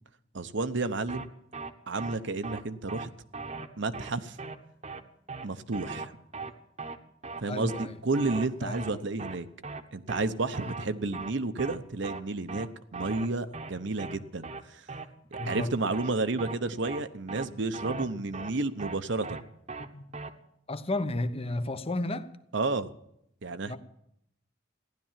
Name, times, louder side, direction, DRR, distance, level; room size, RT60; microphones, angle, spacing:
voice 1, 0.3-1.3 1.9-3.1 3.8-4.4 5.4-6.1 7.4-9.5 9.9-12.7 12.9-14.8 15.3-19.4 22.5-22.9 23.4-23.8, right 3 dB, 65° right, 0.9 m, -31 dB
sound 1, 1.1-1.3 1.5-1.7 2.0-2.2 2.4-2.6 2.9-3.1 3.3-3.7 3.9-4.1 4.4-4.6 4.8-5.0 5.3-5.5 5.7-6.1 6.3-6.5 6.8-7.0 7.2-7.4 7.7-7.9 8.1-8.5 8.7-8.9 9.2-9.4 9.6-9.8 10.1-10.3 10.5-10.9 11.1-11.3 11.6-11.8 12.0-12.2 12.5-12.7 12.9-13.3 13.5-13.7 14.0-14.2 14.4-14.6 14.9-15.1 15.3-15.7 15.9-16.1 16.4-16.6 16.8-17.0 17.3-17.5 17.7-18.1 18.3-18.5 18.8-19.0 19.2-19.4 19.7-19.9 20.1-20.3, right 4 dB, 35° right, 1.1 m, -38 dB
voice 2, 7.4-8.0 8.6-9.0 10.6-10.7 15.4-15.7 17.9-18.2 19.8-20.0 20.7-22.3 23.6-23.8, left 2 dB, 30° left, 0.9 m, -33 dB
15.5 x 11.5 x 7.4 m
head